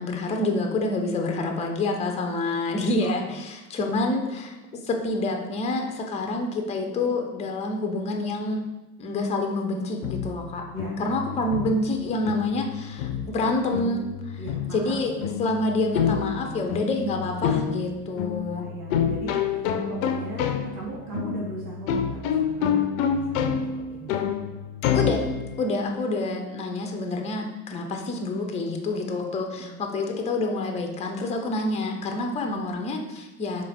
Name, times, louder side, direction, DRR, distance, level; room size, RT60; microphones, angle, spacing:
voice 1, 0.0-4.6 4.8-8.6 9.0-10.6 11.0-14.4 14.7-18.7 24.9-25.3 25.6-33.7, left 2 dB, 15° left, 3 dB, 0.5 m, -27 dB
sound 1, 10.0-25.7, left 7 dB, 60° left, 0.5 m, -28 dB
voice 2, 10.7-11.4 14.4-15.1 16.0-16.6 18.5-24.2 29.5-29.8 32.4-32.6, right 2 dB, 70° right, -3 dB, 1.0 m, -39 dB
3.9 x 3.1 x 4.3 m, 1.0 s
figure-of-eight pair, 65°, 48 cm